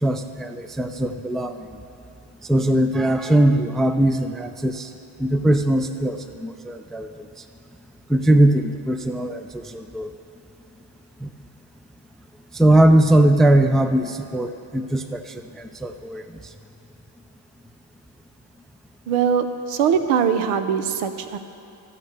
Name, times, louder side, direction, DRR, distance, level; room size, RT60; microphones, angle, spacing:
voice 1, 0.0-1.7 2.5-4.9 5.2-7.1 8.1-10.1 11.2-11.3 12.5-16.2, right 1 dB, ahead, 9 dB, 0.3 m, -20 dB
voice 2, 19.1-21.4, right 7 dB, 85° right, 9 dB, 0.7 m, -21 dB
15.5 x 6.6 x 3.3 m, 2.9 s
supercardioid pair, 60°, 50 cm